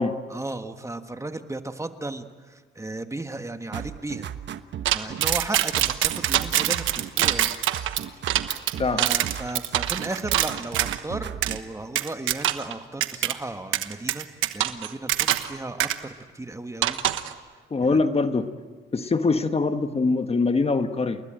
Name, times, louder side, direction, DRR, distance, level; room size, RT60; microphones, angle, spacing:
voice 1, 0.3-4.3 4.9-7.5 8.9-14.3 14.5-17.0 17.8-18.0, right 2 dB, 15° right, 8 dB, 1.5 m, -35 dB
sound 1, 3.7-5.5 5.7-7.5 7.7-9.5 9.7-11.6, right 9 dB, 65° right, 1.2 m, -35 dB
sound 2, 4.9-11.0 11.4-11.6 12.0-12.7 13.0-13.3 13.7-15.5 15.8-16.0 16.8-17.3, right 13 dB, 85° right, 1.2 m, -24 dB
voice 2, 17.7-18.5 18.9-21.2, left 3 dB, 30° left, 8 dB, 1.4 m, -23 dB
29.0 x 20.5 x 9.0 m, 1.5 s
cardioid pair, 90°, 20 cm